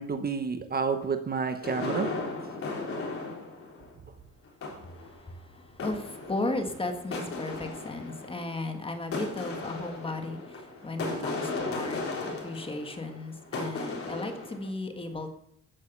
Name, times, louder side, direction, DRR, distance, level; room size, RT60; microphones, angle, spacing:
voice 1, 0.0-2.1, right 5 dB, 25° right, 8 dB, 1.0 m, -29 dB
sound 1, 1.6-3.9 4.5-5.3 5.8-14.7, left 3 dB, 40° left, 3.8 m, -36 dB
voice 2, 4.8-15.3, left 2 dB, 15° left, 6 dB, 1.6 m, -35 dB
14.0 x 9.6 x 7.0 m, 0.72 s
cardioid pair, 175°, 34 cm